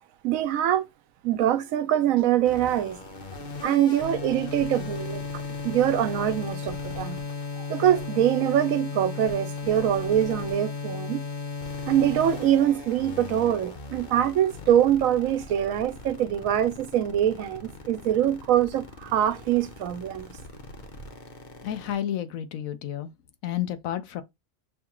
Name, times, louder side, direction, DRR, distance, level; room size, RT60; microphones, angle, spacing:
voice 1, 0.2-0.9 1.2-3.0 3.6-7.2 7.6-11.2 11.9-20.3, right 11 dB, 85° right, 1.0 m, -24 dB
sound 1, 2.5-21.9, left 4 dB, 40° left, 0.8 m, -36 dB
voice 2, 21.6-23.1 23.4-24.2, left 11 dB, 85° left, 1.1 m, -31 dB
5.9 x 2.4 x 2.9 m
omnidirectional pair, 1.4 m